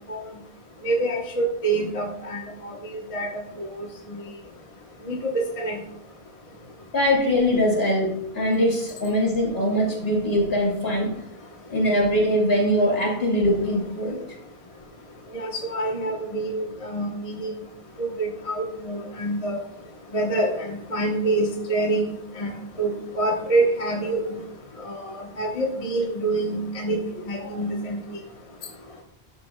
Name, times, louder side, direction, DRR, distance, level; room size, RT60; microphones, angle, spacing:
voice 1, 0.8-3.3 3.6-3.7 5.1-5.8 15.3-17.5 18.0-19.6 20.1-24.4 24.8-27.0 27.3-28.0, right 2 dB, 35° left, 1 dB, 1.1 m, -26 dB
voice 2, 6.9-8.1 8.3-11.1 11.7-14.2, equal, 65° left, -1 dB, 2.9 m, -22 dB
12.5 x 8.8 x 2.2 m, 0.75 s
omnidirectional pair, 1.1 m